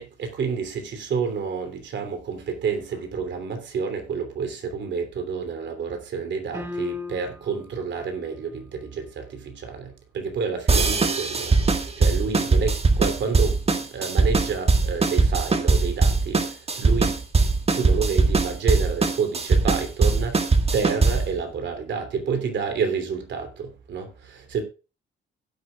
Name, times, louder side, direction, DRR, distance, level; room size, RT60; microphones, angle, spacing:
voice 1, 0.0-11.6 12.0-13.6 13.9-16.4 16.8-17.2 17.7-20.4 20.7-24.6, right 5 dB, 65° right, 3.0 m, -29 dB
sound 1, 6.5-7.6, left 3 dB, 15° right, 1.9 m, -33 dB
sound 2, 10.7-21.4, right 3 dB, 30° right, 1.6 m, -21 dB
16.5 x 8.3 x 2.4 m
cardioid pair, 90°, 20 cm